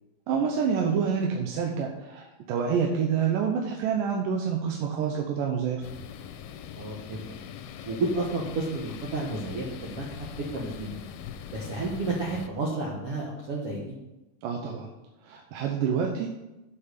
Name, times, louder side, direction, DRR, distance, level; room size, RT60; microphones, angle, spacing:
voice 1, 0.3-5.9 14.4-14.9 15.2-16.3, right 6 dB, 75° right, 1 dB, 2.4 m, -27 dB
sound 1, 5.8-12.5, left 9 dB, 85° left, 2.4 m, -42 dB
voice 2, 6.8-7.3 7.9-10.3 10.5-11.0 11.5-14.0, right 2 dB, 55° right, -4 dB, 1.8 m, -31 dB
8.1 x 5.8 x 6.7 m, 0.99 s
omnidirectional pair, 4.1 m